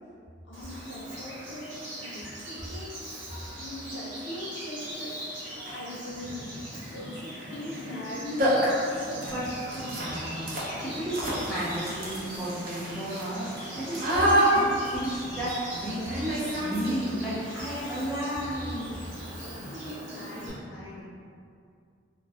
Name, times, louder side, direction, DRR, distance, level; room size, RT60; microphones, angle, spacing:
voice 1, 0.4-2.9 3.6-5.2 5.7-6.6 6.8-8.7 18.9-21.0, left 1 dB, 70° left, -6 dB, 0.7 m, -40 dB
Bird vocalization bird call bird song, 0.5-20.5, right 1 dB, 90° right, 1.0 m, -41 dB
sound 1, 4.9-5.0 5.6-5.9 7.6-7.8 8.1-8.2 8.4-17.2, right 1 dB, 45° right, 0.5 m, -29 dB
voice 2, 9.2-19.1, right 1 dB, 5° left, -12 dB, 0.4 m, -33 dB
2.5 x 2.3 x 3.3 m, 2.4 s
head